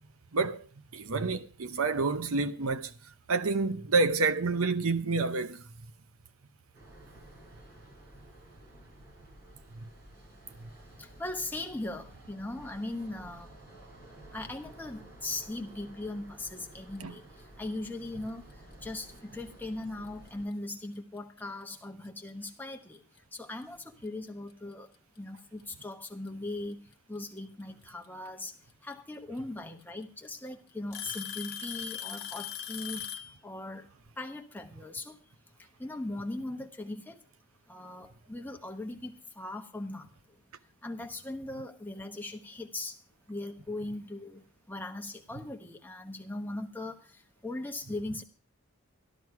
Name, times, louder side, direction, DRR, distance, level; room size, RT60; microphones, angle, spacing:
voice 1, 0.3-0.6 0.9-2.9 3.3-5.6 17.0-17.1, right 3 dB, 70° right, 0.8 m, -28 dB
sound 1, 6.7-20.5, right 1 dB, 50° right, 7.3 m, -53 dB
voice 2, 11.0-13.6 14.3-23.0 23.3-26.8 27.1-28.6 28.8-33.9 34.2-35.2 35.6-37.2 37.7-40.4 40.8-43.0 43.3-48.2, left 2 dB, 10° left, 1.0 m, -39 dB
Alarm / Tick-tock, 19.4-19.6 20.5-20.6 21.4-21.5 23.2-23.3 24.5-24.6 25.8-26.3 28.0-28.1 29.4-29.5 29.8-30.3 30.9-33.4, left 9 dB, 45° left, 1.1 m, -39 dB
13.0 x 12.5 x 4.7 m
head